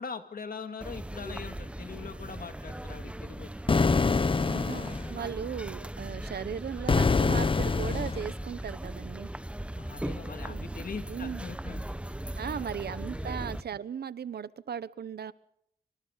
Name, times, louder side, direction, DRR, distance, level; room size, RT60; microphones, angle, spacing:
voice 1, 0.0-3.9 5.2-5.3 9.8-11.8 13.2-13.4, left 5 dB, 60° left, 8 dB, 2.4 m, -42 dB
sound 1, 0.8-13.6, right 1 dB, 5° right, 0.9 m, -38 dB
sound 2, 3.7-5.1 6.9-8.3, left 4 dB, 30° left, 0.8 m, -25 dB
voice 2, 4.4-9.3 10.5-10.7 11.1-11.4 12.4-15.3, right 7 dB, 75° right, 17 dB, 1.0 m, -37 dB
27.5 x 25.5 x 4.1 m, 0.73 s
wide cardioid pair, 100°, 17 cm